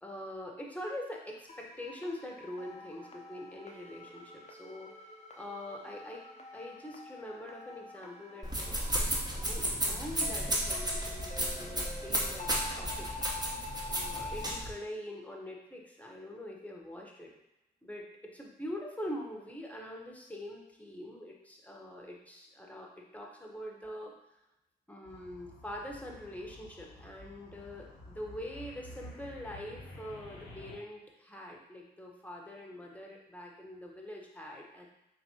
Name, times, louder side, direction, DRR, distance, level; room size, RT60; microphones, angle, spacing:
voice 1, 0.0-4.9 5.4-6.2 6.5-13.1 13.9-17.3 17.8-24.1 24.9-34.9, left 1 dB, 5° left, -1 dB, 1.1 m, -44 dB
sound 1, 1.5-14.6, left 3 dB, 35° left, 0.7 m, -47 dB
sound 2, 8.4-14.7, right 1 dB, 20° right, 1.0 m, -33 dB
sound 3, 25.0-30.8, left 1 dB, 80° left, 0.9 m, -50 dB
4.2 x 2.9 x 2.8 m, 0.90 s
hypercardioid pair, 40°, 20 cm